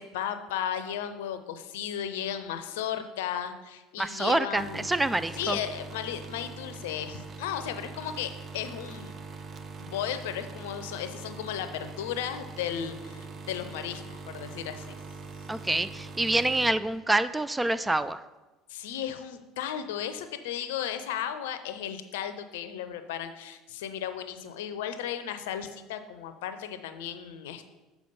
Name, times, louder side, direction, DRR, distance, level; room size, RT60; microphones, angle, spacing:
voice 1, 0.0-4.9 5.4-9.1 9.8-15.0 18.7-27.7, left 9 dB, 70° left, 9 dB, 0.6 m, -35 dB
voice 2, 4.0-5.6 15.5-18.2, right 2 dB, 10° right, 13 dB, 0.3 m, -26 dB
sound 1, 4.6-16.7, right 4 dB, 40° right, 0.7 m, -43 dB
6.7 x 4.7 x 5.3 m, 1.1 s
figure-of-eight pair, 65°, 0 cm